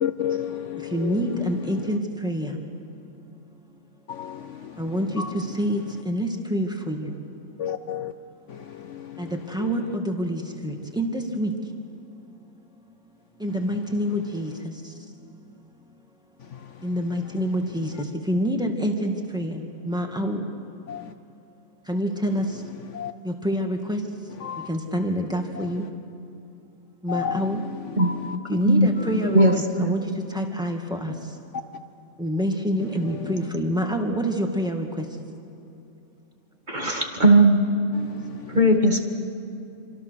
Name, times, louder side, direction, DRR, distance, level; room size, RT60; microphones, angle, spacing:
voice 1, 0.0-2.0 4.1-5.5 7.6-8.1 8.5-10.0 13.5-13.6 16.4-17.0 17.9-18.0 20.9-21.1 22.7-23.1 24.4-24.7 25.5-25.9 27.1-28.4 29.0-29.6 32.8-33.5 36.8-36.9 37.9-38.8, left 8 dB, 60° left, 1.0 m, -34 dB
voice 2, 0.9-2.6 4.8-7.2 9.2-11.5 13.4-14.5 14.8-14.9 16.8-20.5 21.9-22.6 23.2-24.0 24.7-25.9 27.0-27.6 28.5-31.1 32.2-35.1, equal, 5° right, 2.1 m, -27 dB
voice 3, 29.3-30.0 36.7-37.7 38.5-39.0, right 1 dB, 30° right, 1.9 m, -18 dB
27.5 x 25.5 x 6.6 m
omnidirectional pair, 1.6 m